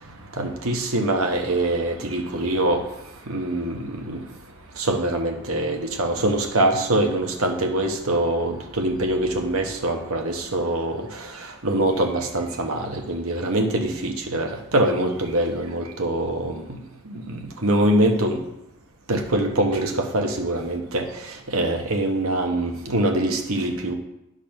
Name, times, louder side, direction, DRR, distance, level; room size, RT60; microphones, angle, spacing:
voice 1, 0.4-2.8 3.3-4.2 4.8-11.0 11.6-16.6 17.1-18.4 19.1-21.1 21.5-23.9, right 1 dB, 85° right, 4 dB, 1.2 m, -23 dB
10.5 x 4.0 x 6.4 m, 0.87 s
head